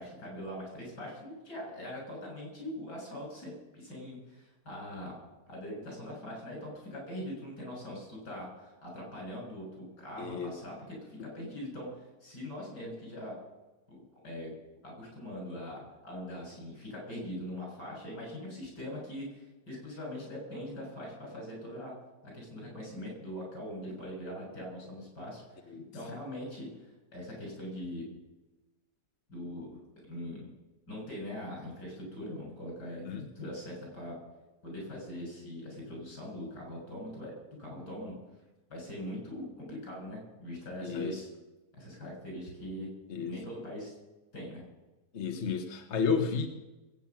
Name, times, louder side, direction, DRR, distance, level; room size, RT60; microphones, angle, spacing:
voice 1, 0.0-5.2 5.5-11.9 12.2-13.4 13.9-14.5 14.8-21.9 22.2-25.4 25.9-26.7 27.1-28.1 29.3-29.7 30.1-30.5 30.9-34.2 34.6-37.3 37.6-38.1 38.7-41.3 41.7-42.9 43.2-43.9 44.3-44.6, left 1 dB, 75° left, -1 dB, 7.5 m, -42 dB
voice 2, 10.2-10.5 25.7-25.9 33.0-33.3 40.8-41.2 43.1-43.4 45.1-46.5, left 6 dB, 45° left, 5 dB, 1.3 m, -32 dB
21.5 x 9.1 x 5.9 m, 1.1 s
omnidirectional pair, 1.8 m